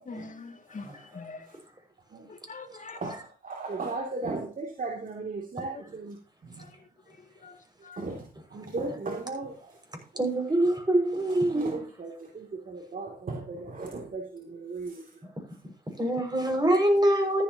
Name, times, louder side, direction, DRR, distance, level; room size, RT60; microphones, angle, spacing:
voice 1, 0.1-1.5 2.3-3.2 6.6-6.7 7.4-7.6 7.8-8.1, left 4 dB, 50° left, 5 dB, 2.4 m, -43 dB
voice 2, 3.4-6.1 8.0-8.2 8.5-9.5 11.5-15.0, right 3 dB, 55° right, 1 dB, 2.9 m, -36 dB
voice 3, 10.2-11.8 16.0-17.4, right 1 dB, 25° right, 3 dB, 6.2 m, -24 dB
14.5 x 10.5 x 3.0 m, 0.36 s
supercardioid pair, 50°, 17 cm